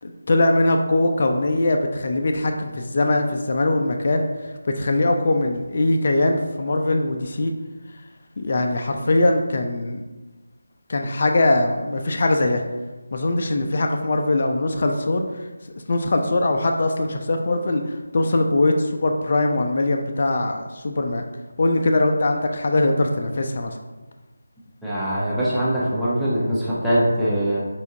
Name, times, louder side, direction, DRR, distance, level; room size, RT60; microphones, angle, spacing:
voice 1, 0.0-7.5 8.4-10.0 10.9-12.6 13.1-15.2 15.9-21.2 21.6-23.8, left 2 dB, 40° left, 4 dB, 0.4 m, -21 dB
voice 2, 24.8-27.6, equal, ahead, -12 dB, 0.7 m, -22 dB
4.5 x 3.5 x 2.7 m, 1.2 s
figure-of-eight pair, 160°, 0 cm